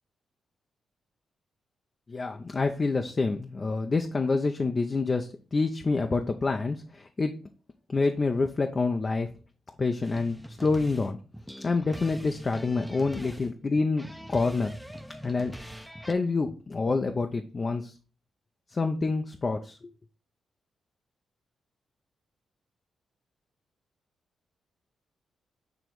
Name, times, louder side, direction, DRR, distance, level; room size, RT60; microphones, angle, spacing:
voice 1, 2.1-7.3 7.9-9.3 9.8-11.2 11.6-14.7 15.2-15.5 16.1-18.0 18.7-19.9, left 3 dB, 40° left, 5 dB, 0.6 m, -27 dB
sound 1, 10.0-16.1, equal, ahead, 0.7 m, -43 dB
7.0 x 3.0 x 4.6 m, 0.37 s
supercardioid pair, 55°, 0 cm